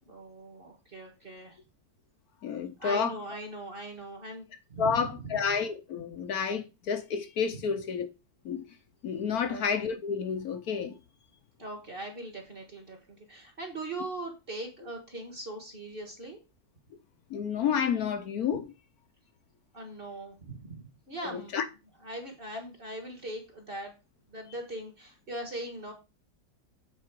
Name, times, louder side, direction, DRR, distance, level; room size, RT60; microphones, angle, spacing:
voice 1, 0.1-1.6 2.8-5.1 9.4-9.6 11.6-16.4 19.7-21.5 22.0-23.9 24.3-25.9, right 1 dB, 30° right, 1.4 m, -40 dB
voice 2, 2.4-3.2 4.8-8.1 8.4-8.7 9.0-11.0 17.3-18.7 21.2-21.6, left 6 dB, 60° left, 1.0 m, -30 dB
8.2 x 4.3 x 4.6 m
omnidirectional pair, 2.3 m